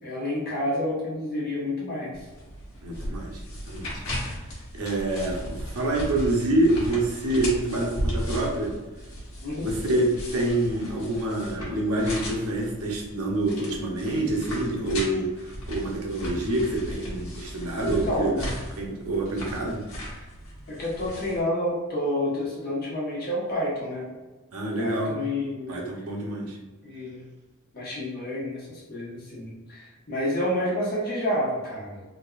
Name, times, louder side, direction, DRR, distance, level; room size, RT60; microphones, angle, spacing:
voice 1, 0.0-2.2 9.4-9.7 17.8-18.5 20.7-24.1 24.8-25.8 26.8-27.2 27.7-32.0, left 1 dB, 45° left, -6 dB, 1.3 m, -29 dB
sound 1, 2.1-21.4, equal, 70° left, 1.2 m, -36 dB
voice 2, 2.8-4.0 4.7-8.7 9.6-15.3 15.7-18.5 18.8-19.8 24.5-25.2 25.7-26.6, right 1 dB, 80° right, -1 dB, 0.8 m, -27 dB
3.5 x 2.7 x 2.4 m, 1.2 s
head